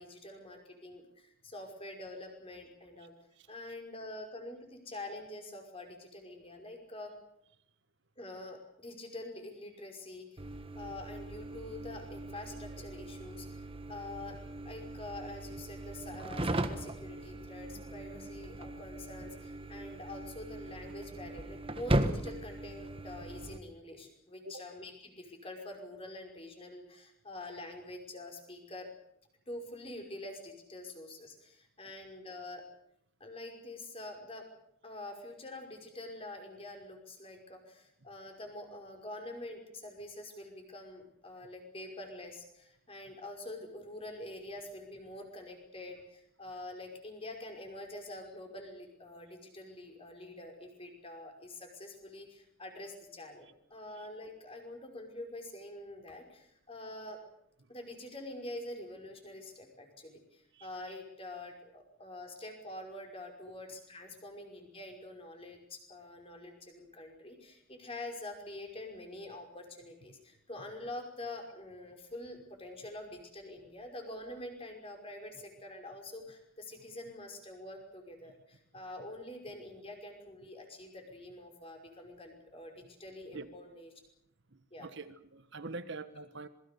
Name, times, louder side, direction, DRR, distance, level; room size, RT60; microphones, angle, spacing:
voice 1, 0.0-3.1 3.5-7.1 8.2-10.4 10.8-13.5 13.9-14.4 14.6-28.9 29.5-32.6 33.2-34.4 34.8-57.2 57.7-83.9 84.7-84.9, left 1 dB, 25° left, 3 dB, 5.5 m, -46 dB
sound 1, 10.4-23.6, right 1 dB, 25° right, 1.5 m, -38 dB
voice 2, 84.5-86.5, right 3 dB, 55° right, 11 dB, 1.4 m, -45 dB
27.0 x 22.0 x 6.9 m, 0.74 s
head